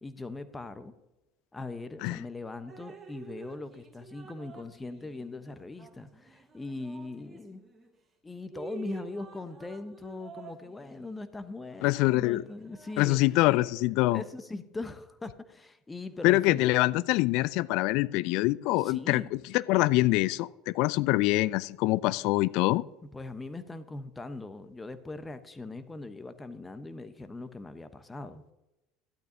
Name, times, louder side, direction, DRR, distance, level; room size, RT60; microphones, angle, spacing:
voice 1, 0.0-0.9 1.5-7.6 8.2-13.2 14.1-16.7 18.8-19.4 23.0-28.4, left 2 dB, 15° left, 1.1 m, -40 dB
Drip, 2.7-7.9 8.4-13.7, right 5 dB, 20° right, 2.3 m, -50 dB
voice 2, 11.8-12.4 13.0-14.2 16.2-19.2 19.5-22.8, left 19 dB, 60° left, 0.4 m, -25 dB
13.0 x 12.0 x 2.9 m
figure-of-eight pair, 70°, 0 cm